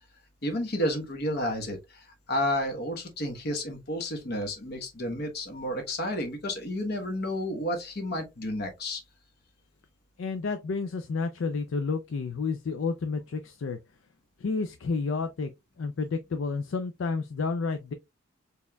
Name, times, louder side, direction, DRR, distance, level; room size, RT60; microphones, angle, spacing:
voice 1, 0.4-9.0, left 1 dB, 50° left, 1.1 m, -31 dB
voice 2, 10.2-13.8 14.4-15.5 15.8-17.9, left 4 dB, 65° left, 0.4 m, -30 dB
4.3 x 3.4 x 2.2 m
head